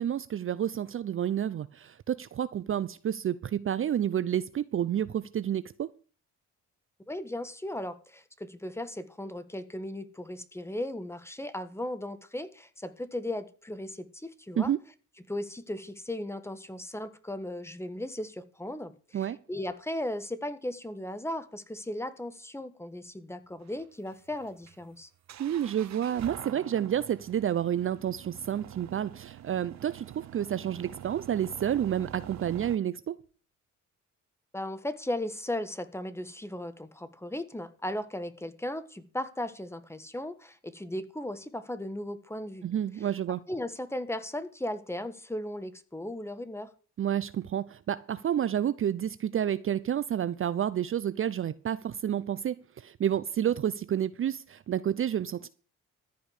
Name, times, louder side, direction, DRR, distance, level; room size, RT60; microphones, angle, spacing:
voice 1, 0.0-5.9 14.6-14.8 19.1-19.4 25.4-33.2 42.6-43.4 47.0-55.5, right 10 dB, 45° right, 0.6 m, -30 dB
voice 2, 7.1-14.7 15.3-25.1 34.5-42.7 43.5-46.7, left 1 dB, 10° left, 1.5 m, -36 dB
sound 1, 23.6-32.8, right 11 dB, 65° right, 1.0 m, -46 dB
14.0 x 5.3 x 8.2 m
cardioid pair, 90°, 30 cm